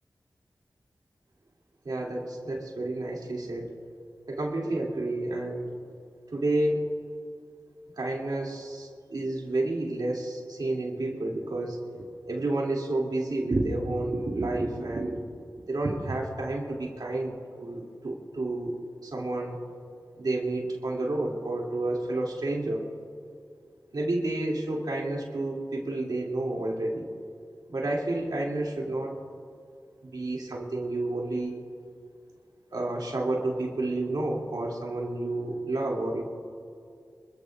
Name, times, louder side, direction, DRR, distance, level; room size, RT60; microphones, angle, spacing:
voice 1, 1.8-3.7 4.3-5.7 6.3-6.9 8.0-11.8 12.3-15.3 15.7-18.8 19.0-19.6 20.2-22.9 23.9-27.1 27.7-29.2 30.0-31.6 32.7-36.2, right 2 dB, 75° right, -2 dB, 2.7 m, -30 dB
27.0 x 14.0 x 2.5 m, 2.4 s
cardioid pair, 50°, 7 cm